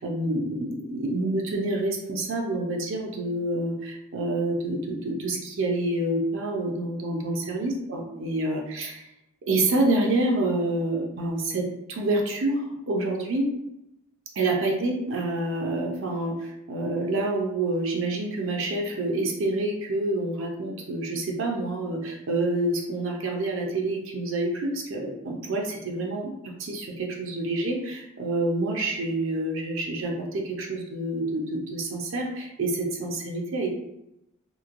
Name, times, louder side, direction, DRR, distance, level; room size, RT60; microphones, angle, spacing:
voice 1, 0.0-9.0 9.5-13.5 14.4-33.7, right 2 dB, 65° right, 1 dB, 0.5 m, -27 dB
3.0 x 2.6 x 2.5 m, 0.88 s
head